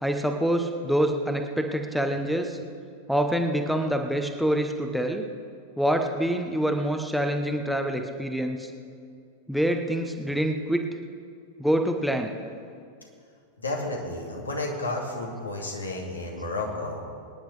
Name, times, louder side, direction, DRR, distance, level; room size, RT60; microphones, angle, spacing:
voice 1, 0.0-2.6 3.1-5.2 5.8-8.7 9.5-10.8 11.6-12.3, right 1 dB, ahead, 4 dB, 1.0 m, -26 dB
voice 2, 13.6-17.1, left 2 dB, 80° left, -1 dB, 2.3 m, -32 dB
25.0 x 10.0 x 3.4 m, 2.3 s
figure-of-eight pair, 90°, 0 cm